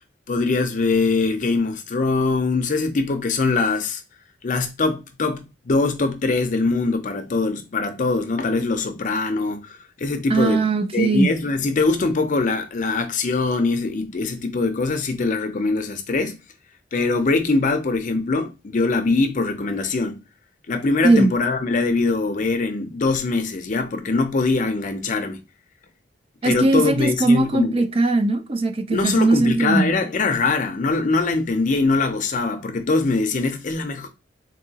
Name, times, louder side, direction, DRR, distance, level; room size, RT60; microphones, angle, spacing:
voice 1, 0.3-4.0 4.4-10.6 10.9-16.4 16.9-20.2 20.7-25.4 26.4-27.7 28.9-34.1, left 3 dB, 45° left, 0.5 m, -22 dB
voice 2, 10.3-11.3 21.0-21.3 26.4-29.9, right 2 dB, 30° right, 0.4 m, -19 dB
3.8 x 2.6 x 2.7 m
head